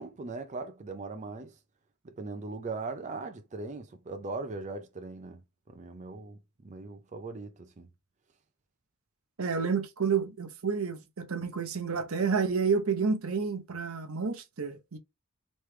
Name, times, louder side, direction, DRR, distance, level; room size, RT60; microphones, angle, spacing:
voice 1, 0.0-1.5 2.0-5.4 5.7-7.9, right 3 dB, 35° right, 0.5 m, -39 dB
voice 2, 9.4-15.0, right 5 dB, 80° right, 0.8 m, -30 dB
3.3 x 3.2 x 3.2 m
head